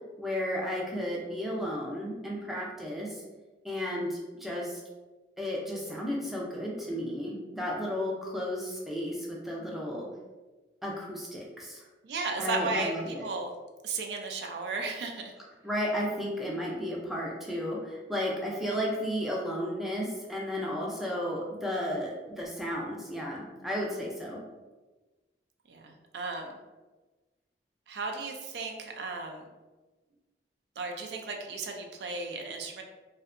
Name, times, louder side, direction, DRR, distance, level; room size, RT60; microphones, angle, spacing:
voice 1, 0.2-3.2 3.6-4.8 5.4-10.1 10.8-11.9 12.4-13.2 15.6-24.4, equal, ahead, -4 dB, 0.4 m, -33 dB
voice 2, 12.0-13.5 13.8-15.3 25.7-26.6 27.9-29.4 30.8-32.8, right 3 dB, 70° right, 3 dB, 0.3 m, -35 dB
2.7 x 2.2 x 2.4 m, 1.2 s
head